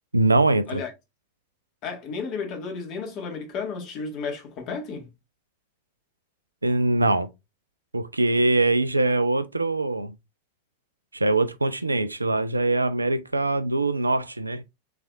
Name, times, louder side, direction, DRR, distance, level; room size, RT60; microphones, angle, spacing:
voice 1, 0.1-0.8 6.6-7.3 7.9-10.1 11.1-14.6, right 2 dB, 80° right, 0.5 m, -23 dB
voice 2, 1.8-5.1, left 5 dB, 40° left, 1.7 m, -33 dB
5.7 x 3.4 x 2.5 m
figure-of-eight pair, 90°, 0 cm